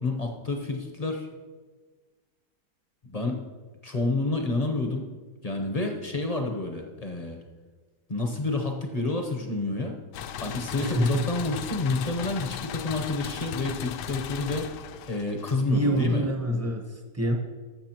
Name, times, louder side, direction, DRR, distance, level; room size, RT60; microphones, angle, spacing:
voice 1, 0.0-1.3 3.0-3.4 3.8-5.0 5.4-7.4 8.1-10.0 10.4-14.7 15.1-16.3, left 2 dB, 40° left, 3 dB, 0.5 m, -29 dB
sound 1, 10.1-16.0, left 9 dB, 80° left, 1.2 m, -37 dB
voice 2, 10.8-11.3 15.7-17.3, equal, 15° right, 2 dB, 0.6 m, -26 dB
13.5 x 6.9 x 2.9 m, 1.4 s
omnidirectional pair, 1.8 m